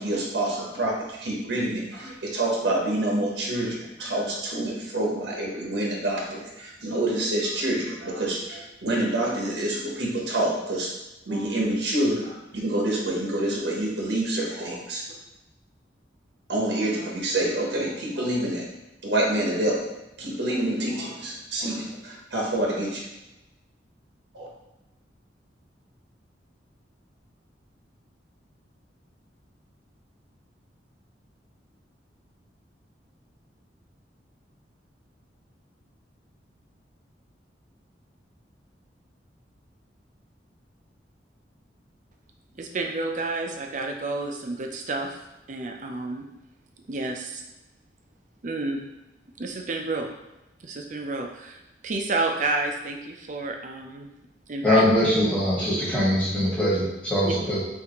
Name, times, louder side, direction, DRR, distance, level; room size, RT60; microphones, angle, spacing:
voice 1, 0.0-10.9 11.3-15.1 16.5-18.7 19.0-19.9 20.2-23.1 24.3-24.5, right 1 dB, 75° right, -2 dB, 1.0 m, -27 dB
voice 2, 42.6-45.2 45.5-46.2 46.9-47.4 48.4-48.8 49.4-50.1 50.6-51.6 51.8-54.1 54.5-54.9 57.2-57.3, right 3 dB, 45° right, 3 dB, 0.5 m, -30 dB
voice 3, 54.6-57.6, left 1 dB, 10° left, -7 dB, 1.4 m, -22 dB
5.7 x 2.7 x 3.0 m, 0.98 s
head